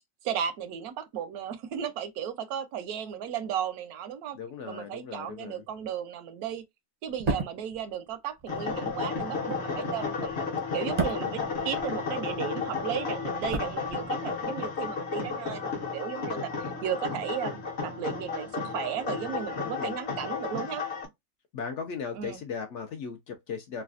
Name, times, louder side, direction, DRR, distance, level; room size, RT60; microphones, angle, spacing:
voice 1, 0.2-4.4 4.7-6.6 7.0-10.4 10.7-20.8 22.1-22.4, right 9 dB, 80° right, 1.1 m, -35 dB
voice 2, 4.4-5.6 11.2-11.6 19.6-20.0 21.5-23.8, left 6 dB, 70° left, 0.7 m, -38 dB
sound 1, 7.1-12.4 12.6-14.5 14.7-14.9, right 3 dB, 45° right, 0.5 m, -35 dB
sound 2, 8.5-21.1, left 5 dB, 50° left, 1.0 m, -33 dB
3.2 x 2.3 x 2.4 m
omnidirectional pair, 1.6 m